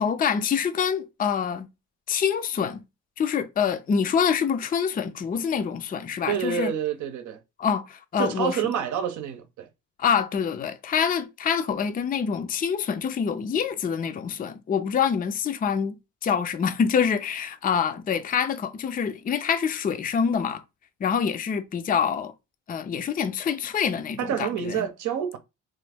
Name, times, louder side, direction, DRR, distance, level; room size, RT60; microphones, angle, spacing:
voice 1, 0.0-1.7 2.1-2.8 3.2-6.7 7.6-8.6 10.0-16.0 16.2-20.6 21.0-22.3 22.7-24.9, left 7 dB, 30° left, 0.4 m, -26 dB
voice 2, 6.3-7.4 8.2-9.7 24.2-25.4, right 8 dB, 75° right, 0.7 m, -28 dB
3.1 x 2.5 x 3.4 m
cardioid pair, 90°, 30 cm